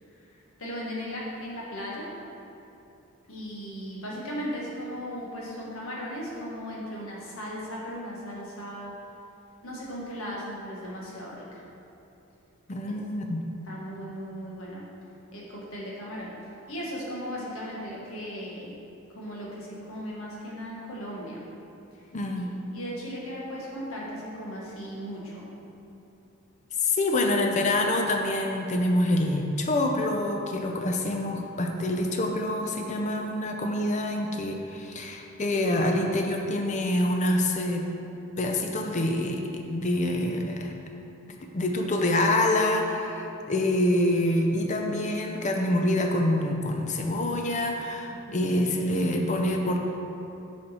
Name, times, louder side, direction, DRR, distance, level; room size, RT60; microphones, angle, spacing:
voice 1, 0.6-2.1 3.3-8.9 9.6-11.6 13.7-14.9 15.3-16.3 16.6-18.8 19.1-21.4 21.9-22.0 22.4-22.5 22.7-25.5 26.9-27.0 48.1-48.4, equal, 70° left, -4 dB, 1.5 m, -37 dB
voice 2, 12.7-13.5 22.1-22.5 26.8-37.9 38.4-40.7 41.4-49.8, left 1 dB, 35° left, 3 dB, 0.5 m, -26 dB
6.7 x 5.1 x 4.2 m, 2.8 s
head